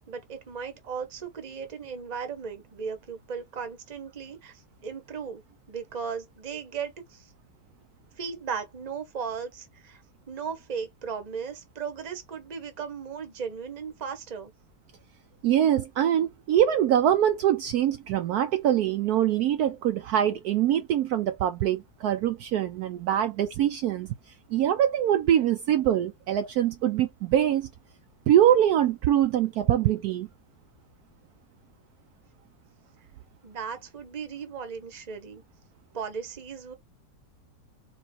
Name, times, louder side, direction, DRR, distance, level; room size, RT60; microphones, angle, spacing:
voice 1, 0.1-5.4 5.7-7.3 8.2-10.0 10.3-14.5 33.4-35.4 35.9-36.7, right 6 dB, 30° right, 0.9 m, -36 dB
voice 2, 15.4-24.1 24.5-27.7 28.3-30.3, right 11 dB, 70° right, 1.0 m, -23 dB
4.8 x 2.5 x 4.2 m
omnidirectional pair, 1.9 m